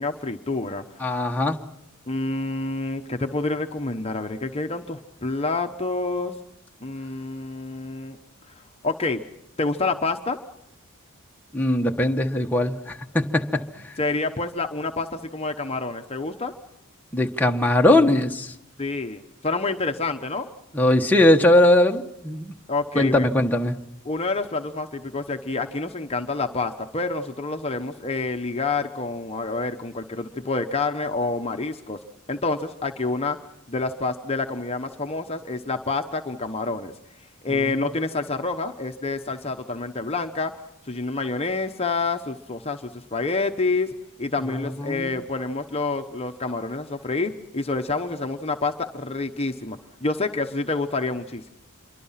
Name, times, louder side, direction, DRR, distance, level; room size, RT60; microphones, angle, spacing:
voice 1, 0.0-1.1 2.1-6.3 6.8-8.2 8.8-9.2 9.6-10.4 14.0-16.5 18.8-20.5 22.7-23.3 24.1-32.0 32.3-33.4 33.7-36.9 37.4-40.5 40.8-43.9 44.2-51.5, left 3 dB, 30° left, 5 dB, 1.0 m, -28 dB
voice 2, 1.0-1.6 11.5-13.9 17.1-18.5 20.7-22.5 22.9-23.7 37.5-37.8 44.5-45.1, left 1 dB, 10° left, 2 dB, 1.3 m, -20 dB
27.5 x 23.5 x 5.8 m, 0.82 s
head